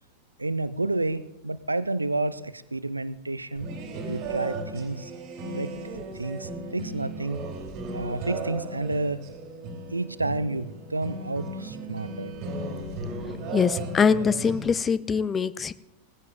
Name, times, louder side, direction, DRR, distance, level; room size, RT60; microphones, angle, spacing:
voice 1, 0.4-3.7 4.1-5.1 5.4-7.5 7.9-9.3 9.9-12.4, right 2 dB, 80° right, 16 dB, 0.5 m, -30 dB
sound 1, 3.6-14.7, right 2 dB, 40° right, 2.6 m, -36 dB
voice 2, 13.5-15.7, left 6 dB, 20° left, 15 dB, 0.5 m, -23 dB
18.5 x 15.0 x 2.6 m, 0.90 s
figure-of-eight pair, 90°, 0 cm